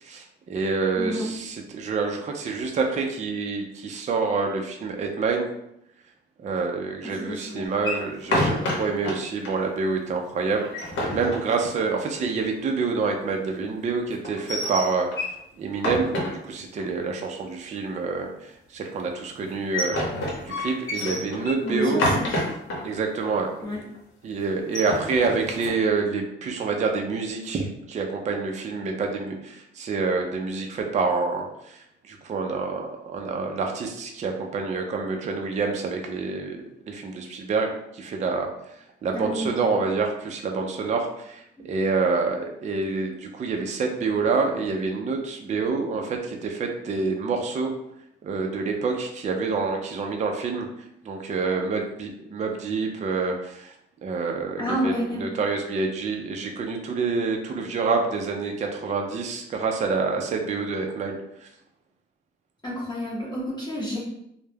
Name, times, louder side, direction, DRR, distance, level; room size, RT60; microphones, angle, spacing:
voice 1, 0.0-5.5 6.4-20.1 20.4-22.0 22.8-23.5 24.2-38.7 39.0-47.7 48.2-50.7 51.0-53.7 54.0-61.5, right 4 dB, 35° right, 2 dB, 0.4 m, -27 dB
voice 2, 1.0-1.3 7.0-7.7 21.6-22.4 23.6-23.8 39.1-39.7 41.6-41.7 54.6-55.3 62.6-64.0, equal, 20° left, -8 dB, 0.7 m, -29 dB
sound 1, 7.8-9.1 9.4-9.5 9.9-10.0 10.5-12.0 14.2-15.4 15.7-16.8 19.4-22.8 23.2-23.3 23.6-24.0 24.6-25.7, left 1 dB, 75° left, 0.8 m, -28 dB
2.2 x 2.0 x 3.2 m, 0.78 s
cardioid pair, 90°, 20 cm